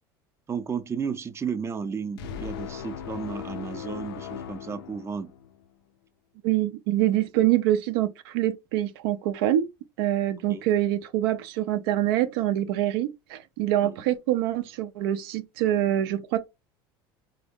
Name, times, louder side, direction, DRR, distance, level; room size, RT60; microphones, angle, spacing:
voice 1, 0.5-5.3 10.5-10.6 13.8-14.0, right 6 dB, 20° right, 0.5 m, -33 dB
sound 1, 2.2-5.6, left 9 dB, 85° left, 0.5 m, -38 dB
voice 2, 6.4-9.7 10.0-16.4, right 13 dB, 75° right, 0.5 m, -25 dB
3.7 x 2.0 x 3.5 m
hypercardioid pair, 90°, 12 cm